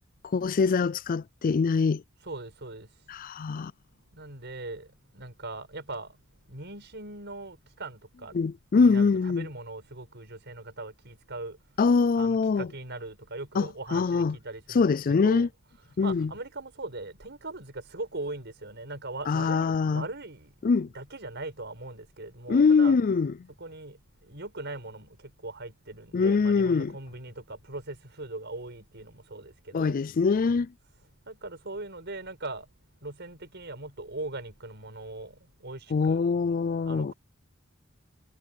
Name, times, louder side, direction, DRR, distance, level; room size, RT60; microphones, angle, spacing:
voice 1, 0.3-2.0 3.1-3.7 8.3-9.5 11.8-12.7 13.6-14.4 14.7-15.5 16.0-16.3 19.3-20.0 20.6-20.9 22.5-23.3 26.1-26.9 29.7-30.7 35.9-37.1, left 4 dB, 40° left, 0.4 m, -23 dB
voice 2, 2.2-2.9 4.1-4.9 5.1-6.2 6.5-8.4 8.7-11.6 12.1-15.5 16.0-20.5 20.9-23.0 23.6-24.0 24.2-30.0 31.3-32.7 33.0-36.2 36.9-37.1, right 2 dB, 55° right, 5.7 m, -40 dB
head